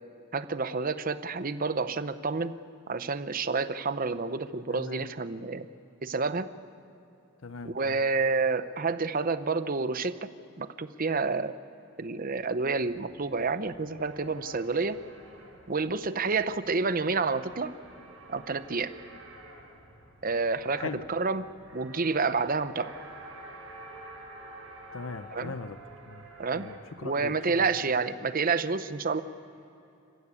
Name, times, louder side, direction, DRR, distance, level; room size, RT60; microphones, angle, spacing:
voice 1, 0.3-2.5 2.9-5.7 6.0-6.5 7.6-10.3 10.6-11.5 12.0-15.0 15.7-17.7 18.3-18.9 20.2-22.9 25.3-25.5 26.4-26.7 27.0-29.2, right 4 dB, 40° right, 12 dB, 0.8 m, -29 dB
voice 2, 4.7-5.1 7.4-8.0 20.8-21.0 24.9-25.8 26.1-26.3 26.5-27.8, left 4 dB, 65° left, 12 dB, 0.7 m, -40 dB
sound 1, 12.7-27.2, right 1 dB, 85° right, 5.8 m, -49 dB
27.0 x 15.0 x 8.4 m, 2.9 s
head